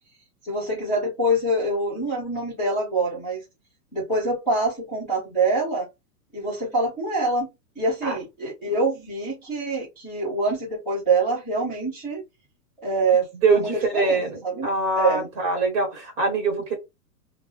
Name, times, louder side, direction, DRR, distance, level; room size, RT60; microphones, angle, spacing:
voice 1, 0.4-3.4 3.9-5.9 6.3-7.5 7.8-12.2 12.8-14.7 15.0-15.3, right 2 dB, 5° left, 0.5 m, -25 dB
voice 2, 13.1-16.7, right 3 dB, 25° right, 1.1 m, -24 dB
2.4 x 2.0 x 3.7 m
hypercardioid pair, 150°, 49 cm